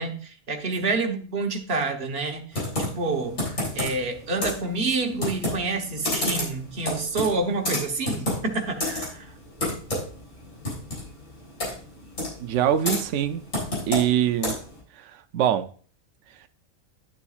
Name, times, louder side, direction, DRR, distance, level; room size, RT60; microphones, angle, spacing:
voice 1, 0.0-9.3, right 3 dB, 50° right, 1.3 m, -28 dB
Computer keyboard, 2.5-14.8, left 1 dB, 70° left, 4.0 m, -31 dB
voice 2, 12.4-13.4 13.9-14.6 15.0-15.7, right 10 dB, 65° right, 0.9 m, -24 dB
11.5 x 6.9 x 2.4 m
omnidirectional pair, 1.4 m